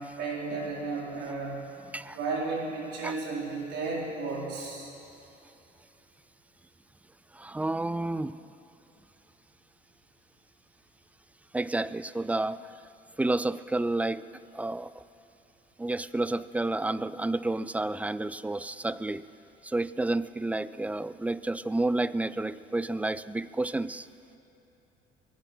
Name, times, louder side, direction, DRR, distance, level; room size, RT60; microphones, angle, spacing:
voice 1, 0.0-1.6 2.1-4.9, right 3 dB, 85° right, -3 dB, 4.0 m, -33 dB
voice 2, 7.3-8.4 11.5-12.7 13.2-14.2 14.5-15.0 15.8-19.2 19.6-24.1, right 2 dB, 10° right, 16 dB, 0.3 m, -30 dB
23.0 x 9.8 x 6.0 m, 2.9 s
cardioid pair, 110°, 17 cm